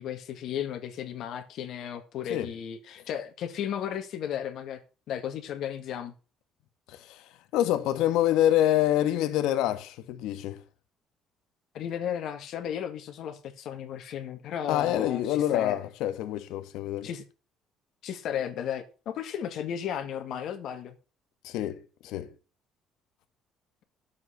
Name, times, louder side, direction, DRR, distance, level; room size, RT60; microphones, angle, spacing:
voice 1, 0.0-4.8 5.1-6.1 11.7-15.8 17.0-17.2 18.0-20.9, left 9 dB, 55° left, 1.7 m, -34 dB
voice 2, 6.9-7.2 7.5-10.6 14.7-17.1 21.4-22.3, left 12 dB, 85° left, 1.3 m, -26 dB
11.0 x 7.5 x 5.7 m
cardioid pair, 170°, 0 cm